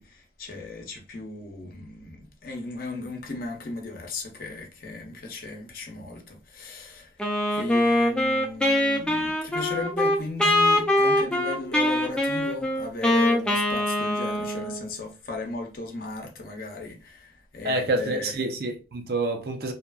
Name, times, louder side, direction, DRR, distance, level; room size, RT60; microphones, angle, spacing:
voice 1, 0.0-7.2 7.5-18.4, left 3 dB, 50° left, 0.6 m, -36 dB
Wind instrument woodwind instrument, 7.2-14.9, left 1 dB, 5° left, 0.4 m, -23 dB
voice 2, 17.6-19.7, right 2 dB, 55° right, 0.5 m, -27 dB
2.8 x 2.4 x 2.2 m
head